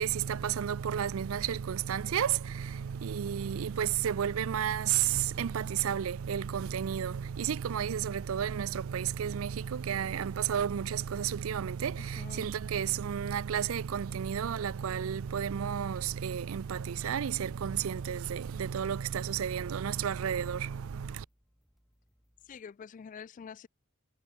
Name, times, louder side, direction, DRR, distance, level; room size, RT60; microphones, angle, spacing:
voice 1, 0.0-21.3, right 8 dB, 75° right, 0.4 m, -32 dB
sound 1, 2.4-6.9 7.3-7.4 12.3-18.7, right 7 dB, 45° right, 6.5 m, -74 dB
sound 2, 4.8-22.6, equal, ahead, 3.2 m, -71 dB
voice 2, 12.2-12.5 22.4-23.7, left 6 dB, 40° left, 0.3 m, -46 dB
head